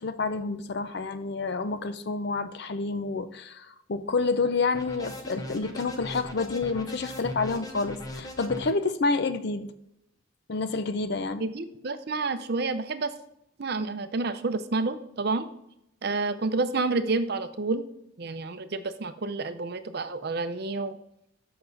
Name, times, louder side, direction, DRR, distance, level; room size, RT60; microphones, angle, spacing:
voice 1, 0.0-9.7 10.5-11.4, left 3 dB, 55° left, 11 dB, 0.5 m, -29 dB
sound 1, 4.7-8.7, left 1 dB, 20° left, 0.7 m, -38 dB
voice 2, 11.4-13.1 13.6-15.5 16.0-17.9 18.2-21.0, right 3 dB, 50° right, 10 dB, 0.6 m, -29 dB
7.7 x 5.9 x 4.0 m, 0.79 s
head